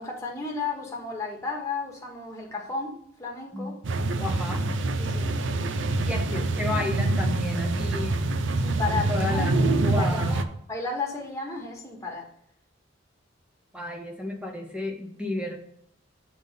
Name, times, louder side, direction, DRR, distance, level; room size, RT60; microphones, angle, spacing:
voice 1, 0.0-3.8 5.0-5.3 8.6-10.4 10.7-12.3, left 4 dB, 15° left, -1 dB, 1.4 m, -33 dB
sound 1, 3.8-10.4, right 2 dB, 65° right, 0.6 m, -25 dB
voice 2, 4.2-4.8 6.0-8.2 8.9-10.4 13.7-15.6, left 1 dB, 5° right, 1 dB, 0.9 m, -32 dB
7.0 x 4.0 x 5.5 m, 0.69 s
head